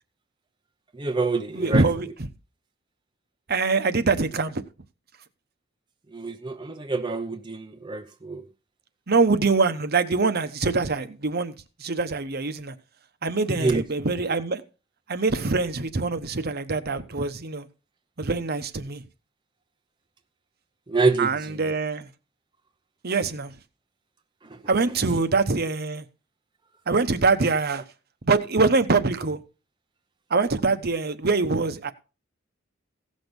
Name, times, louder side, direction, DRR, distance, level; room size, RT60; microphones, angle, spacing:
voice 1, 0.9-1.8 6.1-8.4 13.5-13.8 20.9-21.6 24.4-24.6, right 3 dB, 25° right, 0.7 m, -26 dB
voice 2, 1.5-2.1 3.5-4.6 9.1-11.5 11.8-12.7 13.2-14.6 15.1-17.7 18.2-19.0 21.2-22.1 23.0-23.5 24.7-26.1 26.9-27.8 28.3-29.4 30.3-31.9, right 3 dB, 50° right, 1.0 m, -24 dB
16.0 x 6.3 x 5.3 m
head